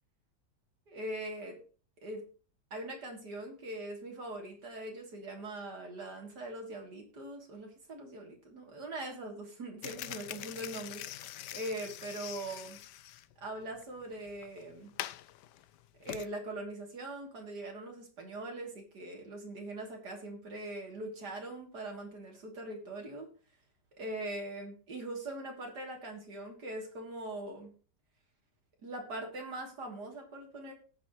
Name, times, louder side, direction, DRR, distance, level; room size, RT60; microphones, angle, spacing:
voice 1, 0.9-1.6 2.0-2.2 2.7-12.8 13.4-14.9 16.0-23.3 24.0-27.7 28.8-30.7, right 1 dB, 75° right, 0 dB, 3.6 m, -42 dB
sound 1, 9.8-16.3, left 13 dB, 85° left, 1.3 m, -44 dB
18.5 x 6.6 x 3.1 m, 0.40 s
omnidirectional pair, 1.8 m